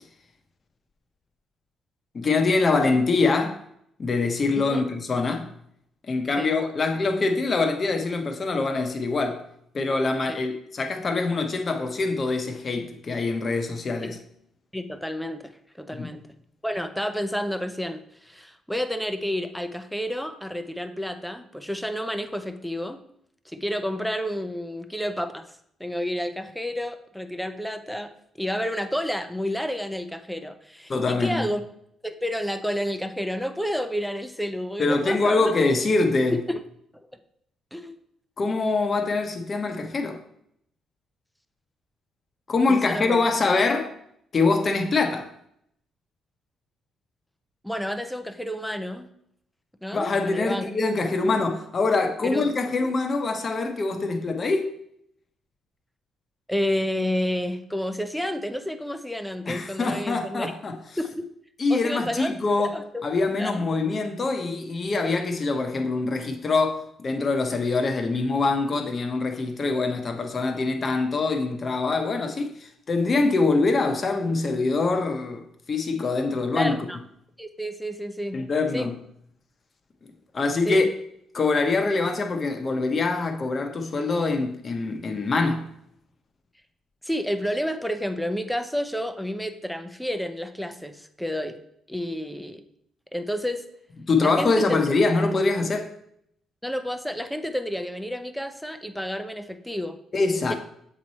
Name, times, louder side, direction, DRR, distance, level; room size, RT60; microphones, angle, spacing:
voice 1, 2.1-3.6 4.0-5.5 6.1-9.4 9.7-14.2 16.0-16.1 30.9-31.5 34.8-36.4 38.4-40.2 42.5-43.9 44.3-45.3 49.9-54.7 59.5-60.8 61.6-62.7 63.0-75.4 75.7-76.8 78.3-78.9 80.3-80.9 81.3-85.7 94.0-95.9 100.1-100.5, left 3 dB, 40° left, 0.9 m, -24 dB
voice 2, 4.6-4.9 6.4-6.5 10.3-10.4 14.0-14.1 14.7-15.5 15.8-16.3 16.6-23.0 23.5-25.4 25.8-28.1 28.4-31.6 32.0-35.5 36.5-36.6 37.7-38.0 42.7-43.2 47.6-49.1 49.8-50.6 52.2-52.5 56.5-60.5 61.0-61.3 61.7-63.0 63.4-63.6 76.5-77.0 77.4-78.4 78.7-78.9 80.7-80.9 87.0-91.6 91.9-92.6 93.1-93.6 94.2-94.8 96.6-100.0 100.5-100.6, equal, ahead, 0.6 m, -30 dB
7.2 x 3.1 x 4.2 m
cardioid pair, 90°, 0 cm